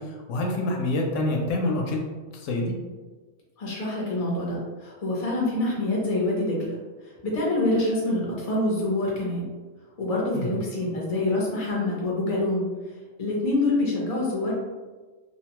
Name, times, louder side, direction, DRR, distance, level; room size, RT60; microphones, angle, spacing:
voice 1, 0.0-2.0 2.3-2.7 10.3-10.5, left 1 dB, 90° left, 1 dB, 0.9 m, -27 dB
voice 2, 3.6-6.7 7.2-9.4 10.0-12.7 13.2-14.5, left 2 dB, 35° left, -3 dB, 0.7 m, -26 dB
2.7 x 2.1 x 2.9 m, 1.3 s
omnidirectional pair, 1.3 m